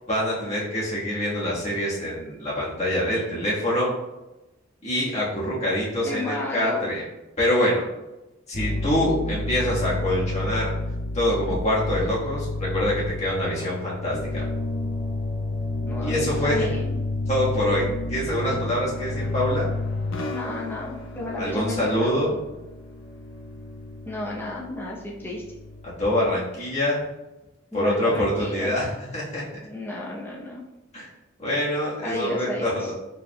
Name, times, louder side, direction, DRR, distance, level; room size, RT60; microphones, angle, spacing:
voice 1, 0.1-3.9 4.8-7.0 7.4-7.8 8.5-10.7 11.1-14.4 16.0-16.6 17.3-17.8 18.1-19.7 21.4-22.3 26.0-27.0 27.7-29.4 30.9-31.1 31.4-32.9, left 1 dB, 35° left, -7 dB, 1.4 m, -25 dB
voice 2, 6.0-6.8 15.7-16.9 20.3-22.2 24.1-25.4 27.7-28.7 29.6-30.6 32.0-32.9, left 1 dB, 10° left, -4 dB, 0.6 m, -32 dB
sound 1, 8.5-25.9, left 2 dB, 75° left, 0.6 m, -31 dB
4.8 x 3.6 x 2.2 m, 1.0 s
head